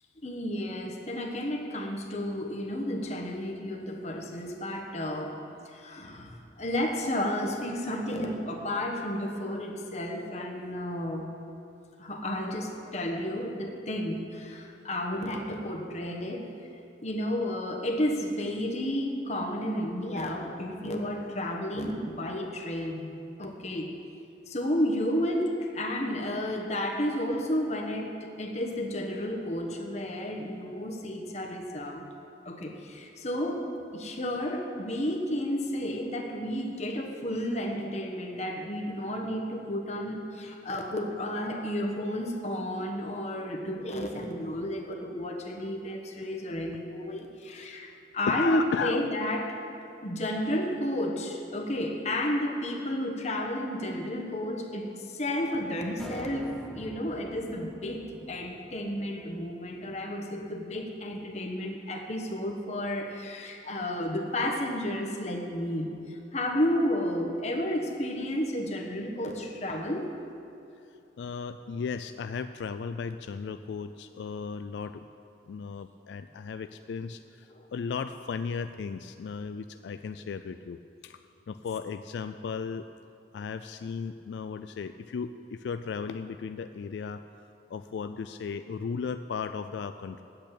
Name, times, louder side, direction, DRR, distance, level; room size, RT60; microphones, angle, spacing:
voice 1, 0.2-5.4 5.6-11.3 12.0-16.5 17.0-23.1 23.4-23.9 24.5-32.1 32.4-33.7 33.9-49.5 50.0-58.0 58.3-70.1 77.5-77.6, left 1 dB, 40° left, 2 dB, 1.2 m, -32 dB
voice 2, 47.4-47.8 48.3-49.1 71.2-75.0 75.5-82.9 83.3-87.2 87.7-90.2, left 5 dB, 80° left, 10 dB, 0.3 m, -35 dB
sound 1, 56.0-60.4, equal, 5° left, 0.6 m, -47 dB
8.6 x 7.9 x 8.9 m, 2.7 s
head